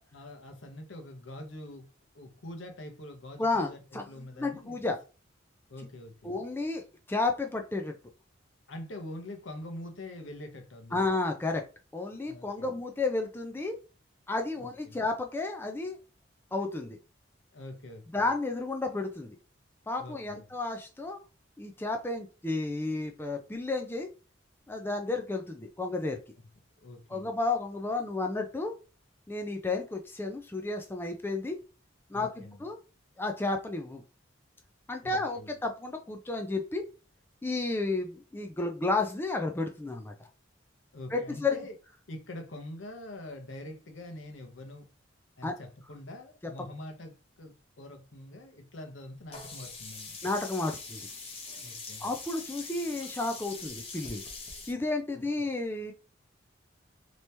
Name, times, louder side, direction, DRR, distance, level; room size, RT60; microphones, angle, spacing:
voice 1, 0.1-1.9 2.1-4.8 5.7-6.3 8.7-11.0 12.2-12.7 14.6-15.0 17.5-18.2 20.0-20.5 26.8-27.3 32.1-32.6 35.0-35.5 40.9-41.8 42.1-44.9 45.4-50.2 51.6-52.1 55.1-55.2, left 1 dB, 75° left, 0.9 m, -44 dB
voice 2, 3.4-5.0 6.2-7.9 10.9-11.6 11.9-13.8 14.3-16.0 16.5-17.0 18.1-19.3 19.9-21.2 21.6-24.1 24.7-26.2 27.1-28.8 29.3-31.6 32.1-32.8 33.2-34.0 34.9-36.9 37.4-40.1 41.1-41.6 45.4-45.6 50.2-51.0 52.0-54.2 54.7-55.9, left 3 dB, 10° left, 0.4 m, -32 dB
Sink (filling or washing), 49.3-54.7, left 4 dB, 30° left, 0.9 m, -43 dB
3.0 x 2.8 x 3.3 m
head